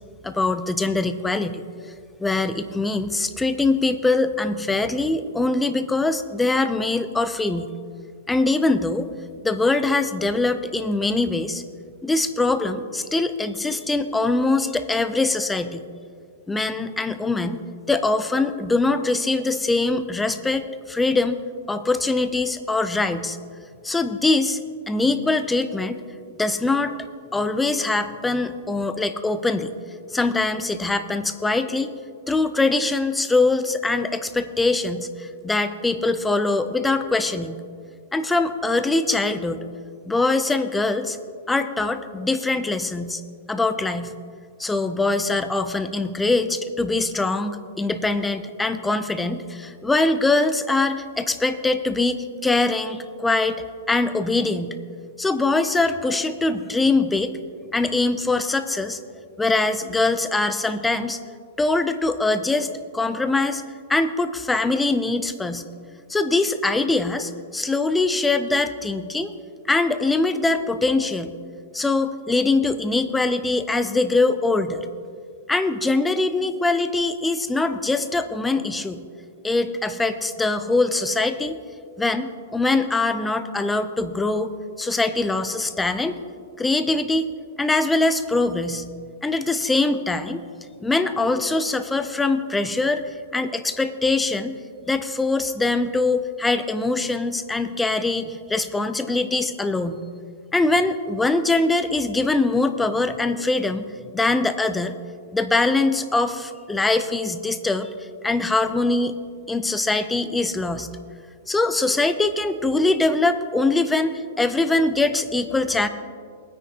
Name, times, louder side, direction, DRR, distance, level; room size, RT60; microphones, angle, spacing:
voice 1, 0.2-1.6 2.2-7.7 8.3-9.1 9.4-11.6 12.0-15.9 16.5-17.6 17.9-21.4 21.7-23.4 23.8-24.6 24.9-26.0 26.4-27.0 27.3-29.7 30.1-31.9 32.3-37.6 38.1-39.6 40.1-41.2 41.5-43.2 43.5-44.1 44.6-54.8 55.2-57.3 57.7-59.0 59.4-61.2 61.6-63.6 63.9-65.6 66.1-69.3 69.7-71.3 71.7-74.9 75.5-79.0 79.4-81.6 82.0-84.5 84.8-86.2 86.6-87.3 87.6-88.9 89.2-90.4 90.8-94.6 94.9-100.1 100.5-103.9 104.1-105.0 105.3-107.9 108.2-109.2 109.5-110.9 111.5-115.9, left 3 dB, 5° left, 10 dB, 0.4 m, -23 dB
19.0 x 9.7 x 2.8 m, 2.2 s
supercardioid pair, 170°, 0 cm